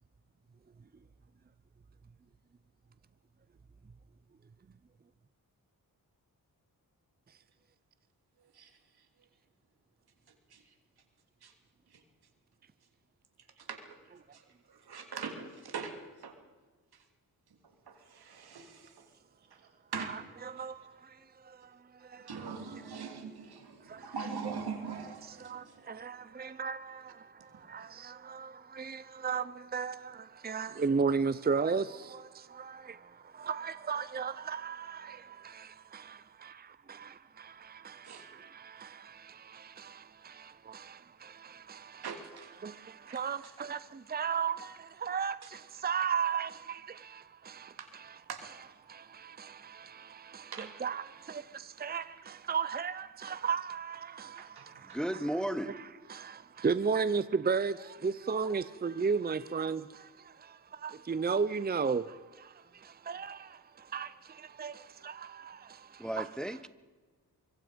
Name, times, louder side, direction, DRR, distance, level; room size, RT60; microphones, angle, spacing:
voice 1, 8.5-9.1 10.5-10.6 11.4-11.5 11.9-12.0 13.6-14.0 14.3-15.9 16.2-16.3 16.9-17.0 17.9-19.1 19.5-20.1 20.5-20.7 22.1-25.8 30.6-30.8 38.0-38.3 42.0-42.5 43.1-43.5 45.4-45.5 47.8-47.9 48.3-48.4 50.5-50.7 54.3-55.0, right 5 dB, 90° right, 3.2 m, -43 dB
voice 2, 20.1-22.3 23.8-24.1 25.3-36.4 36.9-42.0 42.6-48.2 48.8-55.0 55.7-55.8 56.1-66.2, right 5 dB, 25° right, 0.7 m, -36 dB
voice 3, 54.8-55.8 66.0-66.7, right 1 dB, ahead, 0.9 m, -34 dB
25.0 x 23.0 x 5.2 m
cardioid pair, 85°, 37 cm